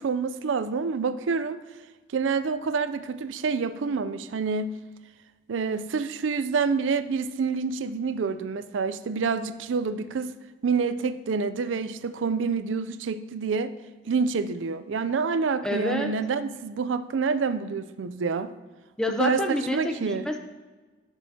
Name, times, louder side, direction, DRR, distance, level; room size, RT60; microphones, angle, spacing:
voice 1, 0.0-1.6 2.1-4.7 5.5-10.3 10.6-13.7 14.1-18.5 19.2-19.4 19.7-20.2, right 5 dB, 85° right, 12 dB, 0.4 m, -27 dB
voice 2, 15.6-16.1 19.0-20.4, left 1 dB, 5° left, 4 dB, 0.5 m, -28 dB
11.5 x 6.2 x 2.8 m, 1.3 s
head